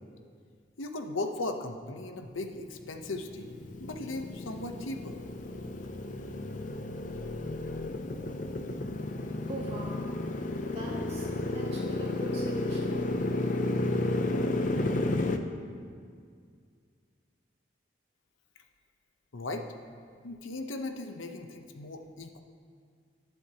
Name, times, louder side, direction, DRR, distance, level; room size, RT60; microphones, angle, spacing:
voice 1, 0.8-3.5 3.8-5.2 19.3-19.7 20.2-22.4, left 2 dB, 85° left, 5 dB, 0.8 m, -37 dB
Motorcycle, 2.7-15.4, left 2 dB, 40° left, 0.5 m, -32 dB
voice 2, 9.5-10.1 10.7-13.0, right 1 dB, 30° right, -4 dB, 2.2 m, -41 dB
20.0 x 7.9 x 2.9 m, 2.1 s
head